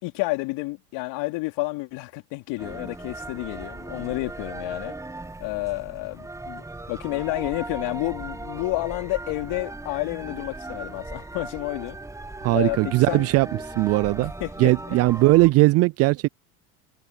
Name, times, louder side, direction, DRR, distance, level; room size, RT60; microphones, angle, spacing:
voice 1, 0.0-4.9 5.4-12.0 12.5-13.3 14.2-15.0, left 23 dB, 55° left, 3.4 m, -30 dB
sound 1, 2.6-15.5, right 2 dB, 5° right, 1.5 m, -38 dB
voice 2, 12.4-13.5 13.8-14.3 14.6-16.3, right 21 dB, 35° right, 0.4 m, -19 dB
hypercardioid pair, 90°, 48 cm